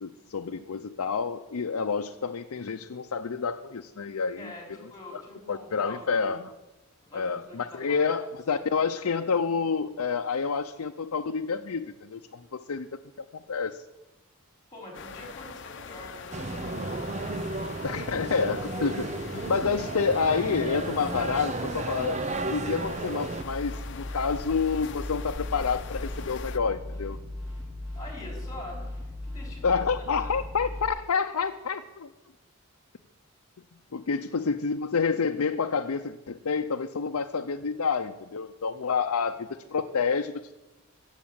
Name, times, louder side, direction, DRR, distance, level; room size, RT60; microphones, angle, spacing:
voice 1, 0.0-4.5 5.5-6.5 7.1-12.9 13.2-13.8 17.8-22.2 22.5-27.2 29.6-32.1 33.9-40.5, left 5 dB, 85° left, 5 dB, 0.6 m, -28 dB
voice 2, 4.4-6.3 7.0-8.1 8.5-9.1 14.7-17.1 27.9-28.8 29.2-30.4 34.2-34.3, left 2 dB, 15° left, 0 dB, 4.3 m, -45 dB
sound 1, 14.9-26.6, left 5 dB, 55° left, 0.8 m, -43 dB
sound 2, 16.3-23.4, right 2 dB, 30° right, 0.7 m, -33 dB
sound 3, 23.4-30.9, left 1 dB, 15° right, 5.7 m, -37 dB
15.0 x 7.3 x 8.8 m, 1.1 s
head